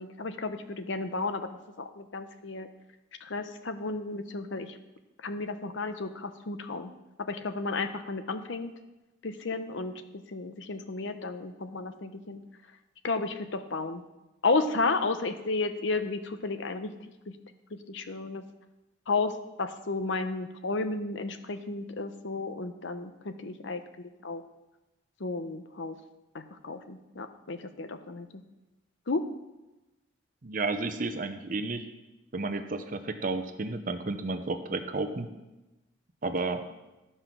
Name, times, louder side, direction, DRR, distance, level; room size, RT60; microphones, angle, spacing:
voice 1, 0.0-2.7 3.2-4.8 5.2-6.9 7.2-8.7 9.2-10.0 10.3-12.4 13.0-14.0 14.4-16.9 17.9-18.4 19.1-24.4 25.2-26.0 26.3-28.4 29.1-29.2, left 3 dB, 70° left, 9 dB, 0.8 m, -33 dB
voice 2, 30.4-31.9 32.3-35.3 36.2-36.6, right 3 dB, 45° right, 8 dB, 0.7 m, -32 dB
12.0 x 5.6 x 6.0 m, 1.0 s
head